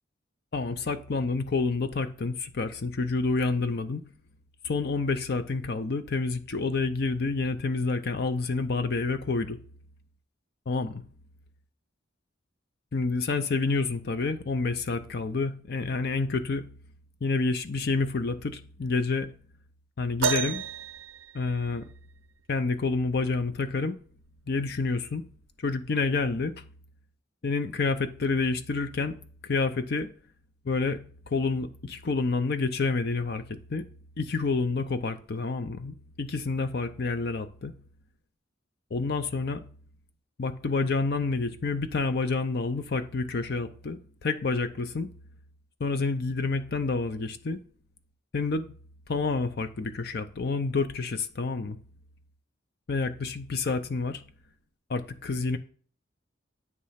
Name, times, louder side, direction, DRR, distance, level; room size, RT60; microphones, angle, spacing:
voice 1, 0.5-4.0 4.6-9.6 10.7-11.0 12.9-16.6 17.2-19.3 20.0-20.6 21.3-21.9 22.5-24.0 24.5-25.2 25.6-26.5 27.4-29.1 29.4-30.1 30.6-31.0 31.3-33.9 34.2-37.7 38.9-39.6 40.4-45.1 45.8-47.6 48.3-48.7 49.1-51.8 52.9-54.2 54.9-55.6, left 3 dB, 55° left, 0.6 m, -28 dB
sound 1, 20.2-22.1 23.8-23.9 24.7-24.9 25.8-25.9, right 5 dB, 75° right, 0.7 m, -31 dB
9.5 x 3.2 x 5.7 m
head